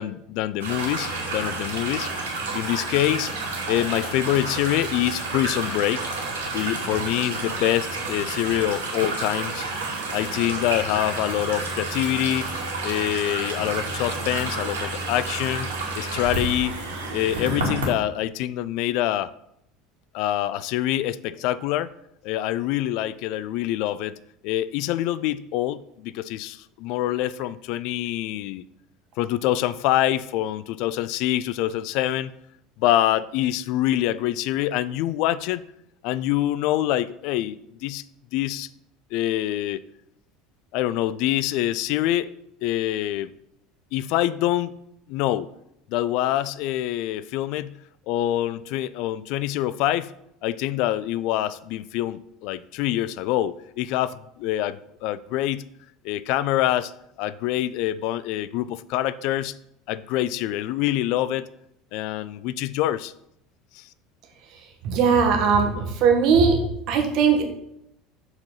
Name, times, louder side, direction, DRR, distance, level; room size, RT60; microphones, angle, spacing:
voice 1, 0.0-3.3 3.7-6.1 6.5-9.7 10.1-12.5 12.8-16.7 17.1-19.3 20.1-21.9 22.2-24.2 24.4-28.6 29.2-32.3 32.8-35.6 36.0-38.0 38.3-38.7 39.1-39.8 40.7-42.3 42.6-43.3 43.9-44.8 45.1-45.5 45.9-47.8 48.1-50.1 50.4-55.6 56.0-56.9 57.2-59.5 59.9-61.4 61.9-63.1 63.7-63.8, left 13 dB, 55° left, 17 dB, 0.3 m, -25 dB
sound 1, 0.6-17.9, right 3 dB, 75° right, 2.3 m, -30 dB
voice 2, 64.8-66.6 66.9-67.4, right 5 dB, 50° right, 3 dB, 1.7 m, -19 dB
7.5 x 4.7 x 5.6 m, 0.78 s
figure-of-eight pair, 70°, 0 cm